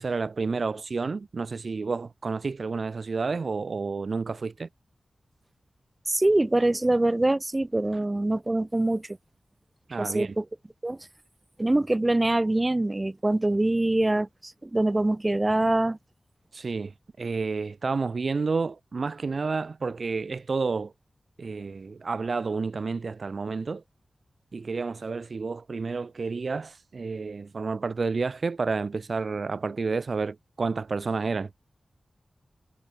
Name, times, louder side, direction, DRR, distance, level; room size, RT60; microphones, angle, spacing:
voice 1, 0.0-4.7 9.9-10.3 16.5-20.9 21.4-23.8 24.5-31.5, right 4 dB, 65° right, 1.7 m, -30 dB
voice 2, 6.1-9.1 10.0-10.4 10.8-11.0 11.6-16.0, right 2 dB, 25° right, 1.1 m, -24 dB
wide cardioid pair, 80°, 0 cm